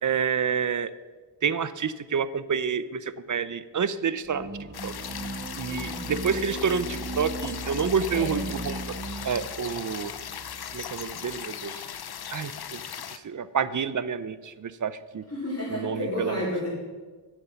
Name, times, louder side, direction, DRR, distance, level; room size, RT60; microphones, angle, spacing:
voice 1, 0.0-0.9 1.4-3.0 3.3-4.5 4.8-4.9 5.6-9.0 9.2-10.1 10.7-11.7 12.3-12.8 13.2-15.2 15.7-16.3, right 6 dB, 45° right, 15 dB, 0.5 m, -28 dB
sound 1, 4.3-11.4, right 2 dB, 30° right, 0.9 m, -37 dB
sound 2, 4.7-13.2, left 8 dB, 55° left, 0.6 m, -38 dB
voice 2, 5.6-6.0 8.1-8.4 15.3-16.7, left 1 dB, 35° left, -8 dB, 3.2 m, -31 dB
8.9 x 7.9 x 5.7 m, 1.4 s
wide cardioid pair, 75°, 45 cm